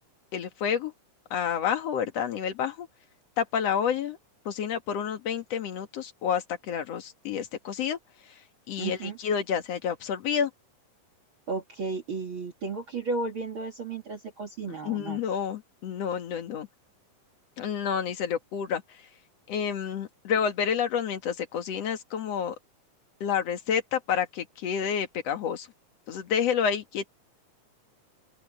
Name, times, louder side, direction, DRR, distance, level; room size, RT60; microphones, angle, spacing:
voice 1, 0.3-0.9 1.3-2.9 3.4-4.2 4.5-8.4 8.7-10.5 14.7-16.7 17.6-19.1 19.5-22.6 23.2-25.7 26.1-27.1, left 7 dB, 55° left, 2.5 m, -29 dB
voice 2, 8.8-9.2 11.5-15.2, right 3 dB, 40° right, 2.7 m, -33 dB
open air
omnidirectional pair, 3.8 m